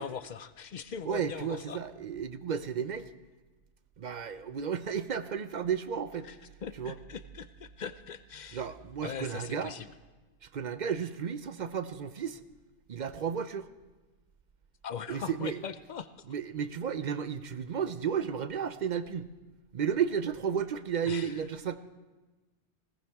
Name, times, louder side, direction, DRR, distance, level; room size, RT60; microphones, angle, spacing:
voice 1, 0.0-1.8 6.2-8.7 9.0-9.9 14.8-16.1 21.1-21.4, left 7 dB, 50° left, 12 dB, 0.6 m, -40 dB
voice 2, 1.0-3.1 4.0-6.3 6.8-6.9 8.5-9.7 10.4-12.4 12.9-13.7 15.1-15.6 16.3-19.3 19.7-21.8, right 7 dB, 50° right, 12 dB, 0.6 m, -33 dB
20.0 x 17.5 x 3.5 m, 1.2 s
omnidirectional pair, 1.2 m